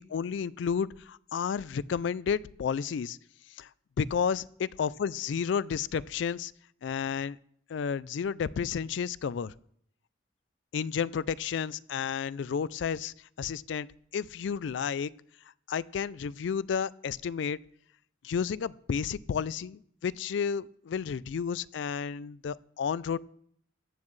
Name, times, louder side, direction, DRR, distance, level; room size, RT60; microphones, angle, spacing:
voice 1, 0.0-3.2 3.6-3.7 4.0-6.5 6.8-7.4 7.7-9.5 10.7-13.9 14.1-15.1 15.7-17.6 18.2-23.2, left 7 dB, 70° left, 20 dB, 0.3 m, -31 dB
14.5 x 9.4 x 3.2 m, 0.67 s
head